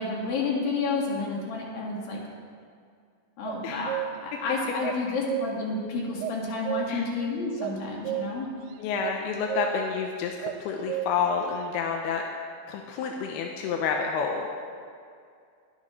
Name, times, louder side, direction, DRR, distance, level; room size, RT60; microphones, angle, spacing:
voice 1, 0.0-2.2 3.4-8.5, left 3 dB, 70° left, -2 dB, 3.6 m, -30 dB
sound 1, 3.5-4.3 4.8-5.8 6.2-7.1 7.6-8.7 9.0-9.2 9.5-10.0 10.4-11.4, right 13 dB, 85° right, 2.6 m, -33 dB
voice 2, 3.6-3.9 6.9-7.0 8.8-12.2 12.7-14.5, left 6 dB, 90° left, 1 dB, 2.7 m, -29 dB
21.0 x 9.6 x 3.2 m, 2.3 s
omnidirectional pair, 4.5 m